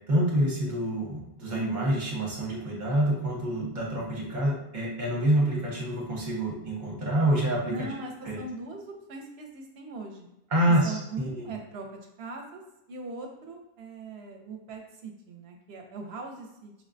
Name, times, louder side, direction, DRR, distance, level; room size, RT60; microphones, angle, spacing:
voice 1, 0.1-7.7 8.2-8.4 10.5-11.5, right 1 dB, 50° right, -3 dB, 1.0 m, -27 dB
voice 2, 7.7-10.3 10.8-12.6 12.9-16.8, right 3 dB, 80° right, 3 dB, 0.8 m, -40 dB
4.7 x 2.1 x 2.5 m, 0.88 s
omnidirectional pair, 1.1 m